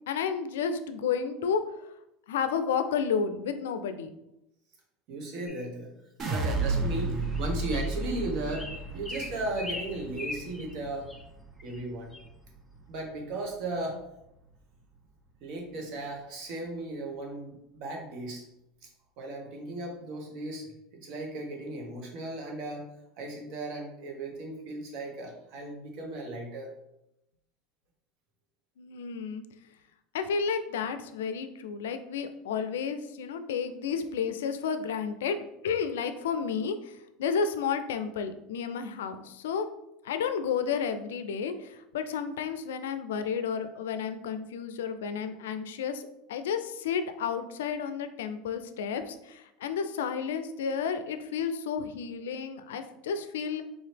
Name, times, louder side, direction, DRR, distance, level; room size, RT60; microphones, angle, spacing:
voice 1, 0.1-1.9 2.3-4.1 28.8-29.4 30.1-39.7 40.0-53.6, left 6 dB, 85° left, 10 dB, 0.3 m, -31 dB
voice 2, 5.1-5.9 6.3-11.1 11.6-12.1 12.9-14.0 15.4-18.4 19.2-20.7 20.9-22.9 23.2-26.7, right 2 dB, 60° right, 1 dB, 1.2 m, -36 dB
sound 1, 5.5-5.7 6.6-6.7 7.2-7.4 7.7-7.9 8.5-10.8 11.1-11.2 11.6-11.8 12.1-12.3, left 2 dB, 5° left, 0.5 m, -40 dB
sound 2, 6.2-12.4 12.7-13.3, right 3 dB, 40° right, 0.8 m, -33 dB
3.9 x 2.8 x 3.4 m, 0.85 s
hypercardioid pair, 100°, 0 cm